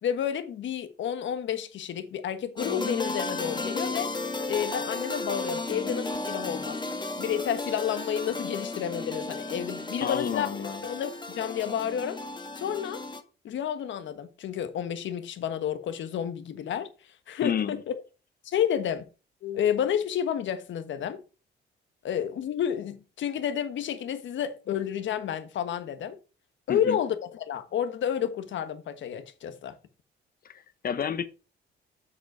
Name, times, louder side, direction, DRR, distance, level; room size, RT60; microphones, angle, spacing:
voice 1, 0.0-4.1 4.5-6.8 7.2-10.5 10.8-12.2 12.5-13.0 13.4-16.9 17.3-17.9 18.4-19.0 19.4-21.2 22.0-26.2 26.7-29.7, left 9 dB, 70° left, 1.4 m, -30 dB
sound 1, 2.6-13.2, left 3 dB, 20° left, 1.6 m, -34 dB
voice 2, 10.0-10.9 17.4-17.8 26.7-27.0 30.4-31.3, left 7 dB, 50° left, 1.2 m, -30 dB
7.8 x 6.7 x 4.8 m
cardioid pair, 90°, 20 cm